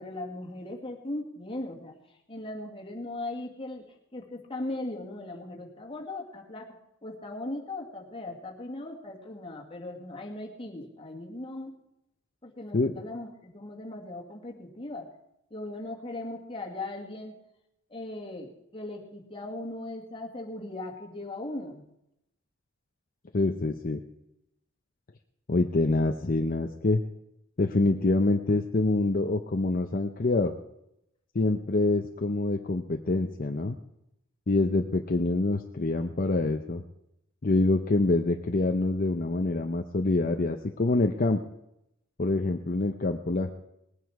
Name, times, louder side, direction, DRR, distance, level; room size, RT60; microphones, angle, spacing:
voice 1, 0.0-2.0 2.3-3.9 4.1-11.8 12.4-15.1 15.5-17.4 17.9-21.8, left 2 dB, 25° left, 0 dB, 2.2 m, -38 dB
voice 2, 23.3-24.0 25.5-27.0 27.6-30.5 31.3-33.8 34.5-36.8 37.4-41.4 42.2-43.5, left 2 dB, 45° left, 4 dB, 0.7 m, -26 dB
20.0 x 9.4 x 4.8 m, 0.83 s
head